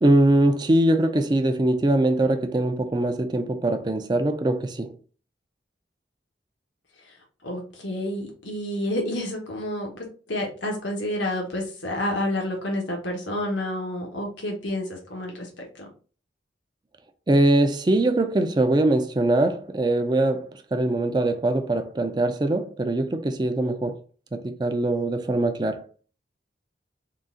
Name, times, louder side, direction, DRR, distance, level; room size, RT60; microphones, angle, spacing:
voice 1, 0.0-4.9 17.3-24.0 24.3-25.8, right 2 dB, 25° right, 0.4 m, -22 dB
voice 2, 7.4-15.9, left 1 dB, 90° left, 1.1 m, -29 dB
3.8 x 2.4 x 3.7 m
head